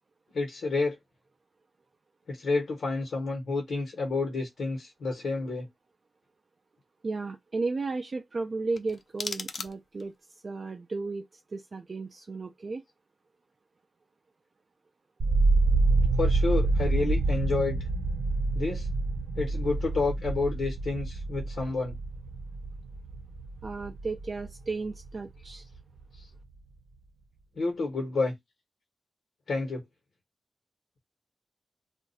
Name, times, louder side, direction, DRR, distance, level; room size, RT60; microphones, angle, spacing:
voice 1, 0.3-1.0 2.3-5.7 16.2-17.8 18.5-18.9 19.4-22.0 27.5-28.3 29.5-29.8, left 3 dB, 90° left, 1.1 m, -29 dB
voice 2, 7.0-10.1 10.4-12.8 23.6-25.7, right 3 dB, 40° right, 0.3 m, -34 dB
sound 1, 8.7-10.2, left 4 dB, 50° left, 0.4 m, -38 dB
sound 2, 15.2-25.2 25.5-26.2, right 3 dB, 80° right, 0.7 m, -27 dB
2.5 x 2.3 x 4.0 m
wide cardioid pair, 150°, 0 cm